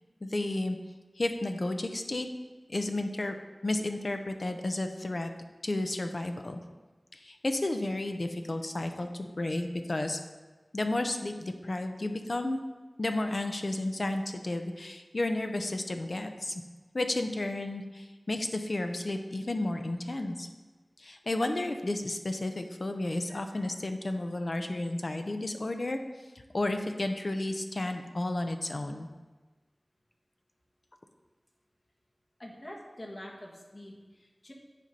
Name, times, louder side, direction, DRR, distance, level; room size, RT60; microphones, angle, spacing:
voice 1, 0.2-0.8 1.2-2.3 2.7-3.3 3.6-5.3 5.6-6.6 7.2-10.2 10.7-12.6 13.0-16.6 16.9-20.5 21.0-26.0 26.5-29.1, left 2 dB, 60° left, 6 dB, 0.7 m, -32 dB
voice 2, 32.4-34.5, left 1 dB, 40° left, -1 dB, 1.5 m, -45 dB
9.1 x 4.3 x 5.3 m, 1.3 s
wide cardioid pair, 65°, 0 cm